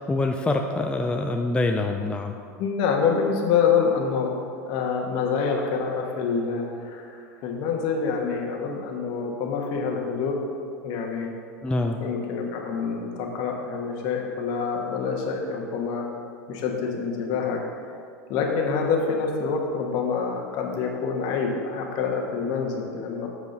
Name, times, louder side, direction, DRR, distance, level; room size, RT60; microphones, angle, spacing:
voice 1, 0.1-2.3 11.6-12.0, left 2 dB, 10° left, 3 dB, 0.5 m, -25 dB
voice 2, 2.6-4.3 4.6-10.4 10.8-11.3 12.0-16.1 16.5-17.6 18.3-23.3, left 5 dB, 55° left, 1 dB, 1.4 m, -26 dB
8.0 x 4.9 x 5.3 m, 2.3 s
hypercardioid pair, 90°, 9 cm